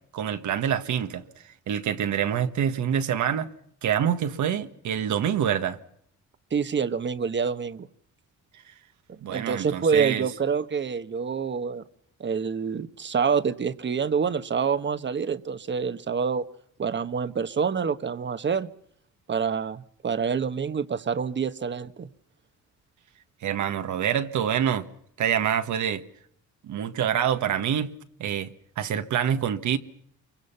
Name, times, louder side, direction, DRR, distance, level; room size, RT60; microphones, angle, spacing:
voice 1, 0.1-1.2 1.7-3.5 3.8-5.8 9.2-10.3 23.4-24.9 25.2-26.0 26.6-27.9 28.2-28.5 28.8-29.8, right 9 dB, 70° right, 1.6 m, -26 dB
voice 2, 6.5-7.9 9.1-11.8 12.2-16.5 16.8-18.7 19.3-22.1, right 6 dB, 40° right, 1.3 m, -27 dB
26.5 x 24.0 x 5.7 m
cardioid pair, 90°, 30 cm